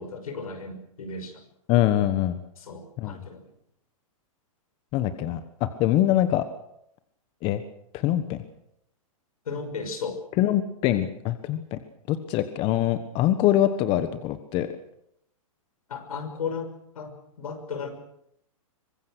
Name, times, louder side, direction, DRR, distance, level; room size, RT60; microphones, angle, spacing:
voice 1, 0.0-1.4 2.6-3.5 6.1-6.2 9.5-10.2 15.9-16.7 16.9-17.9, left 5 dB, 85° left, 7 dB, 5.9 m, -35 dB
voice 2, 1.7-2.4 3.0-3.2 4.9-6.5 7.4-7.6 7.9-8.4 10.4-11.8 12.1-14.7, left 13 dB, 30° left, 11 dB, 1.3 m, -24 dB
24.0 x 20.5 x 6.4 m, 0.76 s
hypercardioid pair, 145°, 18 cm